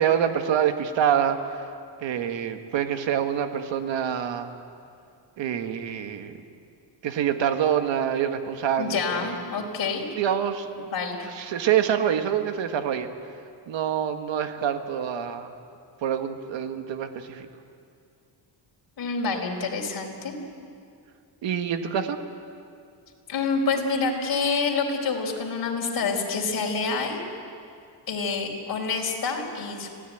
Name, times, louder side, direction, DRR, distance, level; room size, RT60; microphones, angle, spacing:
voice 1, 0.0-1.6 2.0-4.5 5.4-6.4 7.0-9.4 10.2-10.9 11.2-13.1 13.7-15.5 16.0-17.5 21.4-22.2, right 9 dB, 70° right, 7 dB, 1.7 m, -26 dB
voice 2, 8.8-10.0 10.9-11.3 19.0-20.3 23.3-27.2 28.1-29.9, left 4 dB, 50° left, 1 dB, 4.5 m, -27 dB
26.0 x 17.0 x 9.3 m, 2.4 s
cardioid pair, 145°, 46 cm